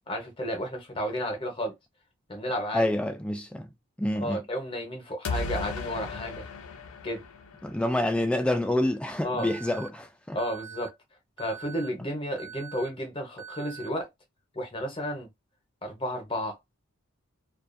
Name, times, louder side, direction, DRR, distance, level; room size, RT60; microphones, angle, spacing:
voice 1, 0.1-1.8 2.3-2.8 4.2-6.4 7.0-7.2 9.2-9.5 10.3-10.9 11.4-14.1 14.5-15.3 15.8-16.6, equal, 25° left, 0.8 m, -32 dB
voice 2, 2.7-3.7 4.0-4.4 7.6-10.4, left 1 dB, 5° left, 0.3 m, -27 dB
sound 1, 5.2-8.1, left 3 dB, 80° left, 0.5 m, -35 dB
Alarm, 9.4-9.9 10.4-10.9 11.4-11.9 12.4-12.9 13.4-13.9, right 8 dB, 70° right, 0.5 m, -43 dB
2.4 x 2.3 x 2.5 m
head